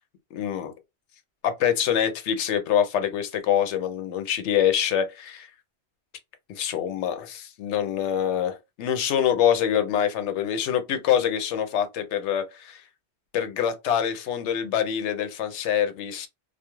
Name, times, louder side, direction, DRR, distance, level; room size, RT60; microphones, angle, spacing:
voice 1, 0.3-0.7 1.4-5.5 6.5-12.8 13.3-16.3, left 9 dB, 85° left, 0.9 m, -25 dB
2.3 x 2.3 x 2.9 m
omnidirectional pair, 1.2 m